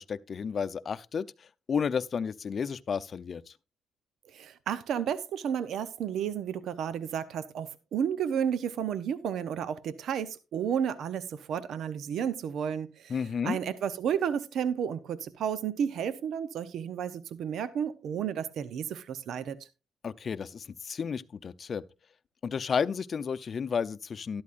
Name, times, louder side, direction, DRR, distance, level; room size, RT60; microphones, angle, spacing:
voice 1, 0.0-3.5 13.1-13.6 20.0-21.8 22.4-24.4, left 6 dB, 45° left, 0.7 m, -32 dB
voice 2, 4.3-13.2 13.4-19.6, right 8 dB, 70° right, 0.8 m, -32 dB
12.5 x 12.5 x 2.6 m
cardioid pair, 90°, 0 cm